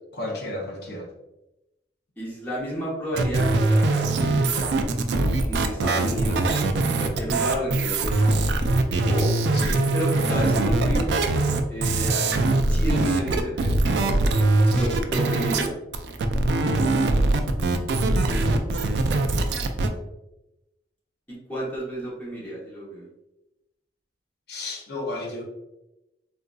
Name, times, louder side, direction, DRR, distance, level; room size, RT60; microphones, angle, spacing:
voice 1, 0.1-1.1 9.5-9.8 14.7-14.9 24.5-25.4, left 2 dB, 60° left, -1 dB, 0.7 m, -33 dB
voice 2, 2.2-5.1 5.5-8.3 9.1-9.3 9.9-11.1 11.7-13.7 14.7-15.7 21.3-23.1, equal, 10° left, -7 dB, 1.0 m, -31 dB
sound 1, 3.2-15.7 15.9-19.9, right 2 dB, 70° right, 0.3 m, -22 dB
3.7 x 2.5 x 2.3 m, 0.94 s
head